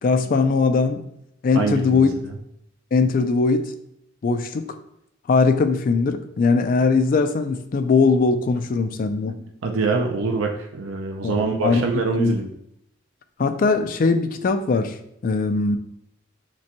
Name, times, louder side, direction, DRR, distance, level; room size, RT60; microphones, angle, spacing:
voice 1, 0.0-1.0 1.4-2.1 2.9-3.7 4.2-4.7 5.3-9.4 11.2-11.8 12.2-12.4 13.4-14.9 15.2-15.8, left 4 dB, 45° left, 8 dB, 0.3 m, -20 dB
voice 2, 1.5-2.3 9.6-12.5, right 4 dB, 90° right, 3 dB, 0.5 m, -24 dB
6.0 x 2.2 x 2.8 m, 0.78 s
head